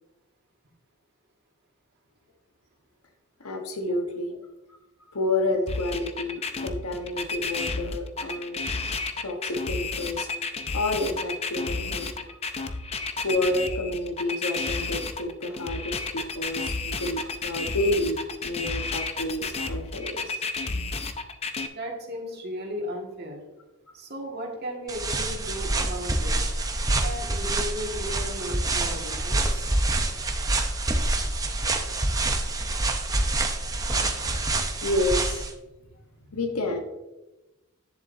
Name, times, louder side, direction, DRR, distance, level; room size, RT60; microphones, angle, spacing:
voice 1, 3.4-4.4 5.1-8.6 9.2-10.3 10.7-12.1 12.7-12.8 13.2-20.4 34.8-35.4 36.3-36.8, left 2 dB, 80° left, 3 dB, 1.2 m, -29 dB
sound 1, 5.7-21.7, left 4 dB, 30° left, 0.5 m, -31 dB
voice 2, 21.7-23.4 23.9-26.5 27.0-29.8, equal, 45° right, 0 dB, 1.8 m, -36 dB
sound 2, 24.9-35.5, right 2 dB, 15° right, 0.6 m, -26 dB
10.5 x 7.0 x 2.7 m, 1.0 s
head